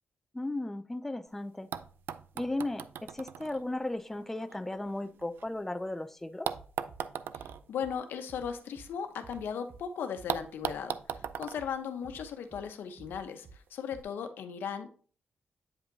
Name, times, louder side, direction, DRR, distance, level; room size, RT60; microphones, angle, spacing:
voice 1, 0.3-1.7 2.4-6.5, left 2 dB, 10° left, 9 dB, 0.4 m, -35 dB
sound 1, 1.3-1.4 1.7-5.8 6.4-9.4 9.7-9.8 10.3-12.7 13.7-13.8, right 9 dB, 85° right, 0.3 m, -40 dB
Bass drum, 6.5-7.0 7.3-8.0 8.3-8.9 9.2-9.8 10.2-10.8 11.1-11.7 12.0-12.6 13.0-13.6 13.9-14.0, right 5 dB, 40° right, 0.6 m, -51 dB
voice 2, 7.3-14.9, left 7 dB, 90° left, 7 dB, 0.8 m, -37 dB
8.5 x 5.2 x 2.7 m, 0.43 s
wide cardioid pair, 145°, 3 cm